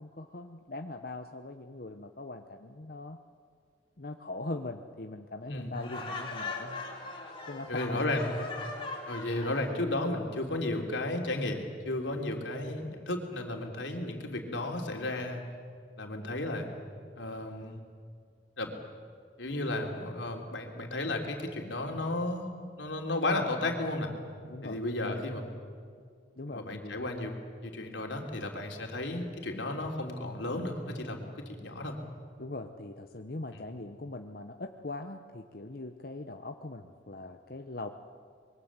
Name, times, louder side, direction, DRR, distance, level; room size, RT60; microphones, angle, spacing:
voice 1, 0.0-3.2 4.0-6.9 7.5-8.2 24.4-25.2 26.4-27.0 32.4-37.9, left 2 dB, 50° left, 5 dB, 0.9 m, -41 dB
Laughter, 5.7-9.8, left 3 dB, 30° left, 3.6 m, -40 dB
voice 2, 7.7-8.3 9.1-15.4 16.0-16.7 17.2-17.8 18.6-18.8 19.4-22.5 22.8-24.1 24.6-25.4 26.5-27.3 27.6-32.0 33.5-33.6, left 2 dB, 85° left, 2 dB, 3.4 m, -33 dB
25.0 x 22.5 x 7.5 m, 2.1 s
head